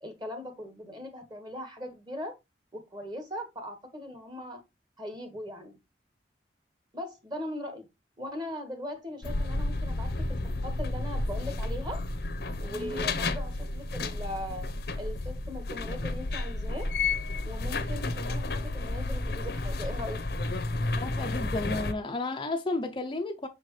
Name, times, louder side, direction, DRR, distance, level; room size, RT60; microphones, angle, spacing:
voice 1, 0.0-2.3 2.7-4.6 5.0-5.8 6.9-7.9 8.2-12.0 12.6-14.7 15.0-16.9 17.4-20.2, left 1 dB, 25° right, 1.4 m, -39 dB
sound 1, 9.2-21.9, left 2 dB, 65° left, 0.8 m, -31 dB
voice 2, 21.0-23.5, left 2 dB, 30° left, 0.5 m, -32 dB
6.8 x 4.5 x 3.1 m
head